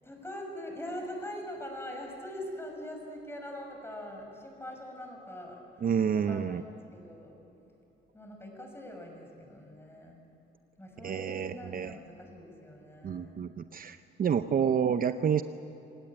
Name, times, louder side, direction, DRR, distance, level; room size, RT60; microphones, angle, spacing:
voice 1, 0.0-5.9 6.1-7.4 8.1-10.2 10.8-13.4 14.2-14.7, left 1 dB, 10° left, 2 dB, 6.5 m, -43 dB
voice 2, 5.8-6.6 11.0-12.0 13.0-15.4, right 7 dB, 45° right, 10 dB, 0.7 m, -29 dB
27.0 x 17.5 x 9.0 m, 2.9 s
cardioid pair, 90°, 20 cm